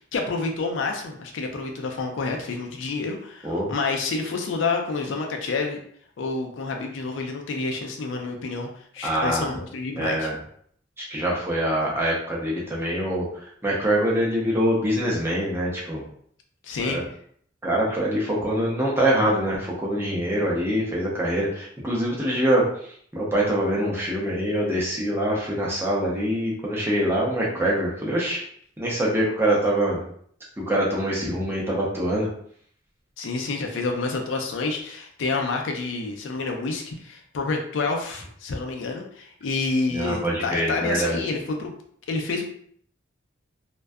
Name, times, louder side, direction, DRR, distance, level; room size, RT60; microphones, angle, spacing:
voice 1, 0.1-5.8 6.2-10.3 16.6-17.0 33.2-41.8 42.1-42.4, left 3 dB, 70° left, 3 dB, 0.4 m, -28 dB
voice 2, 9.0-9.5 10.0-10.4 11.0-16.0 16.8-17.0 17.6-28.4 28.8-30.0 30.7-32.3 39.9-41.2, right 1 dB, 10° right, -5 dB, 0.6 m, -24 dB
2.5 x 2.2 x 2.2 m, 0.62 s
head